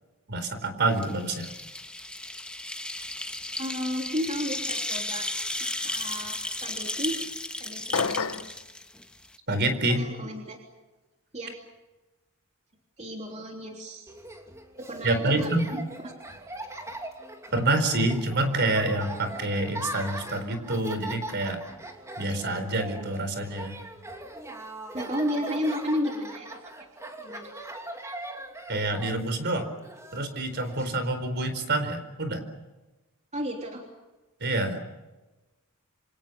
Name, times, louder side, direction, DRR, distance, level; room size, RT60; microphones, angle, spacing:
voice 1, 0.3-1.5 9.5-10.0 15.0-15.7 17.5-21.6 22.2-23.8 28.7-29.7 30.1-32.4 34.4-34.9, right 2 dB, 50° right, 9 dB, 4.5 m, -27 dB
sound 1, 0.9-9.4, left 2 dB, 5° left, 1.5 m, -34 dB
voice 2, 3.6-5.3 5.6-7.2 7.6-8.6 9.9-10.6 11.3-11.5 13.0-14.1 14.8-16.1 24.9-26.9 27.2-27.5 33.3-33.8, equal, 30° right, 1 dB, 3.3 m, -33 dB
sound 2, 7.9-8.6, left 5 dB, 65° left, 0.9 m, -28 dB
Laughter, 14.1-30.8, right 1 dB, 15° right, 2.9 m, -40 dB
28.0 x 27.0 x 6.8 m, 1.1 s
head